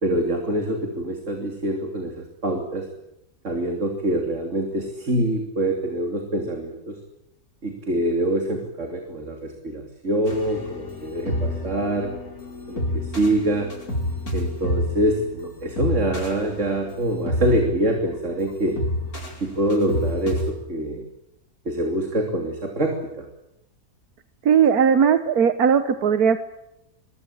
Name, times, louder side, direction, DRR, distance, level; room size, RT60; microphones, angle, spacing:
voice 1, 0.0-2.9 3.4-6.9 7.6-12.1 12.7-13.7 14.3-18.8 19.4-21.0 21.6-23.2, right 1 dB, 55° right, 3 dB, 3.3 m, -25 dB
sound 1, 10.3-20.5, left 1 dB, 80° left, 5.8 m, -29 dB
voice 2, 24.4-26.4, right 7 dB, 90° right, 10 dB, 1.6 m, -18 dB
23.5 x 23.5 x 8.8 m, 0.86 s
omnidirectional pair, 1.5 m